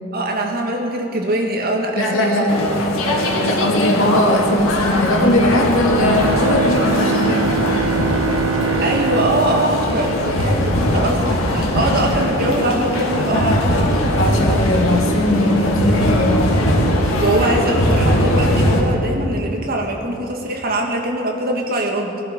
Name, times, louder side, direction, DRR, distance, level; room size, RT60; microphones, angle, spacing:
voice 1, 0.1-2.5 8.8-13.9 17.2-22.2, right 1 dB, 50° right, 1 dB, 1.9 m, -22 dB
voice 2, 1.9-2.7 3.4-7.5 14.1-16.5, left 1 dB, 70° left, 0 dB, 2.3 m, -19 dB
sound 1, 2.5-18.8, left 1 dB, 90° left, 2.3 m, -19 dB
Bowed string instrument, 6.0-11.1, right 7 dB, 80° right, 0.4 m, -25 dB
21.5 x 11.5 x 5.2 m, 2.7 s
head